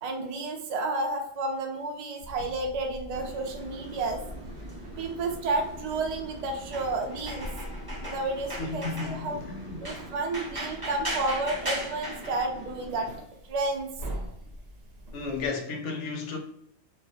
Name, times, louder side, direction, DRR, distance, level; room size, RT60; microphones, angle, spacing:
voice 1, 0.0-4.2 5.0-7.5 8.0-9.4 9.8-13.1 13.4-13.9, right 2 dB, 75° right, 0.3 m, -31 dB
sound 1, 2.2-15.5, equal, 60° right, 0.7 m, -44 dB
sound 2, 3.1-13.2, right 1 dB, 25° right, 0.6 m, -39 dB
voice 2, 8.6-10.0 15.1-16.4, left 4 dB, 75° left, 0.9 m, -34 dB
2.3 x 2.0 x 2.6 m
omnidirectional pair, 1.3 m